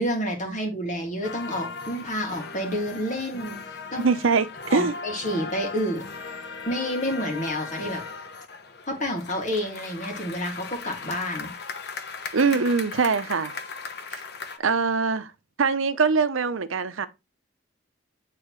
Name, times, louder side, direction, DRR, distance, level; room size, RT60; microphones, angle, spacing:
voice 1, 0.0-4.1 4.7-6.0 6.7-8.0 8.9-11.5, equal, 40° left, 2.1 m, -29 dB
sound 1, 1.2-14.6, left 4 dB, 55° left, 0.9 m, -38 dB
voice 2, 4.0-4.9 12.3-13.5 14.1-14.2 14.6-15.3 15.6-17.1, right 4 dB, 85° right, 0.7 m, -23 dB
9.3 x 3.8 x 3.1 m
head